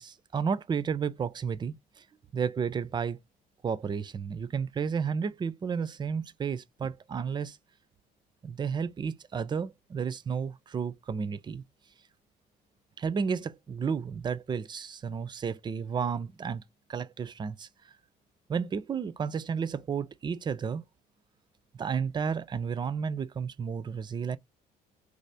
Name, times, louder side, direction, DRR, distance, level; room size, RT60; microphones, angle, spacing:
voice 1, 0.0-2.0 2.3-3.2 3.6-7.6 8.4-11.6 13.0-16.6 16.9-17.7 18.5-20.8 21.8-24.4, right 6 dB, 25° right, 0.4 m, -32 dB
3.2 x 2.4 x 2.6 m
cardioid pair, 110°, 17 cm